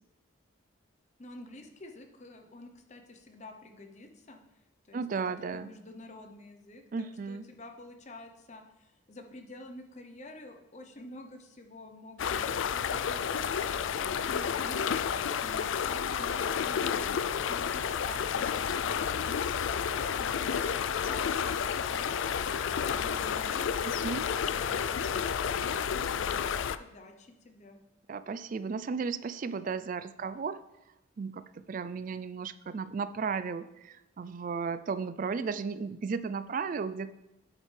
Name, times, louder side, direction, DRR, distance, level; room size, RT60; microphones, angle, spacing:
voice 1, 1.2-5.2 5.5-25.1 25.4-27.8, left 1 dB, 35° left, 5 dB, 0.7 m, -49 dB
voice 2, 4.9-5.7 6.9-7.5 23.8-24.2 28.1-30.6 31.2-37.1, right 5 dB, 40° right, 14 dB, 0.3 m, -34 dB
sound 1, 12.2-26.8, left 7 dB, 70° left, 0.4 m, -31 dB
8.8 x 8.5 x 3.3 m, 0.95 s
head